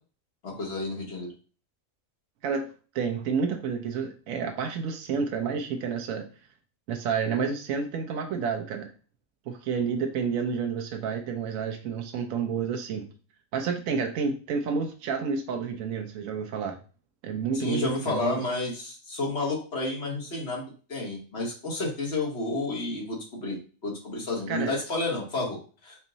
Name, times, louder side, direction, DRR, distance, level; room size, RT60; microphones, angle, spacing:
voice 1, 0.4-1.3 17.5-20.6 20.9-23.6 23.8-26.0, left 2 dB, 55° left, -2 dB, 1.5 m, -31 dB
voice 2, 2.4-6.3 6.9-8.9 9.5-13.1 13.5-16.8 17.2-18.4 24.5-24.7, right 6 dB, 80° right, 3 dB, 1.0 m, -30 dB
4.4 x 2.1 x 3.8 m, 0.37 s
omnidirectional pair, 1.4 m